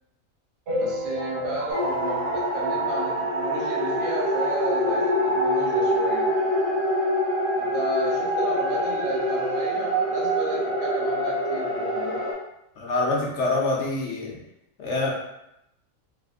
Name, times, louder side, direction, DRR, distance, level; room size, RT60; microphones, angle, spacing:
sound 1, 0.7-3.5 4.0-4.1 4.3-4.4 4.7-4.8 5.7-5.8 6.2-6.3, left 1 dB, 60° right, 0.8 m, -32 dB
voice 1, 0.8-6.3 7.6-12.3, right 2 dB, 75° right, -3 dB, 1.3 m, -33 dB
sound 2, 1.7-12.3, equal, 25° right, 1.3 m, -25 dB
voice 2, 12.8-14.4 14.8-15.1, left 2 dB, 65° left, -2 dB, 0.8 m, -25 dB
3.4 x 2.5 x 2.4 m, 0.83 s
omnidirectional pair, 1.5 m